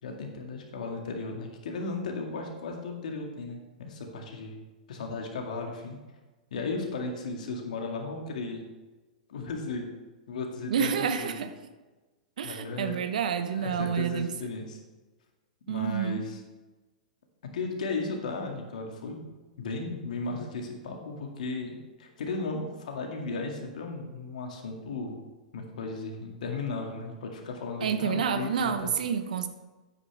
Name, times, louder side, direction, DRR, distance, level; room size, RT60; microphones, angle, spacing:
voice 1, 0.0-4.6 4.9-6.0 6.5-8.6 9.3-9.9 10.3-11.4 12.4-13.0 13.5-14.8 15.7-16.4 17.5-19.3 19.6-25.2 25.5-28.9, left 3 dB, 65° left, 2 dB, 2.0 m, -35 dB
voice 2, 10.7-11.5 12.4-14.3 15.7-16.3 27.8-29.5, right 7 dB, 65° right, 10 dB, 0.9 m, -29 dB
9.5 x 9.1 x 3.4 m, 1.2 s
hypercardioid pair, 105°, 4 cm